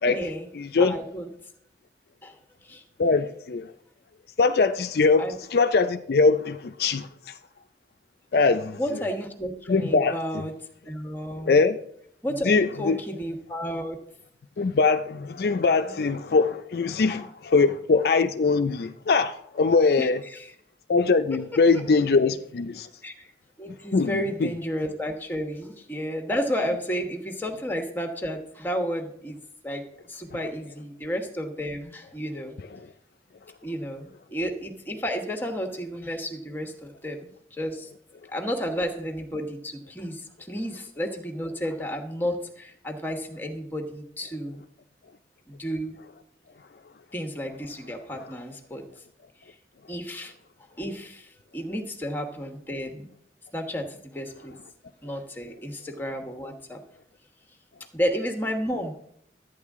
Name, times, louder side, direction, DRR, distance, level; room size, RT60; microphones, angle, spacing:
voice 1, 0.0-0.5 0.8-1.3 2.2-2.4 2.6-2.8 5.2-5.4 8.7-10.6 10.8-11.6 12.2-14.0 15.8-16.0 17.1-17.2 20.0-20.5 21.7-21.8 23.0-23.3 23.6-29.4 29.6-32.5 33.6-37.9 38.3-44.6 45.5-46.0 47.1-48.8 49.4-49.5 49.9-50.3 50.8-53.1 53.5-54.5 55.0-56.8 57.9-59.0, equal, 10° left, 1.2 m, -32 dB
voice 2, 0.5-1.0 3.0-3.7 4.4-7.3 8.3-8.8 9.7-10.2 11.4-11.8 12.4-13.0 14.6-20.2 20.9-22.9 23.9-24.5, left 4 dB, 60° left, 0.4 m, -22 dB
12.5 x 9.1 x 3.6 m
head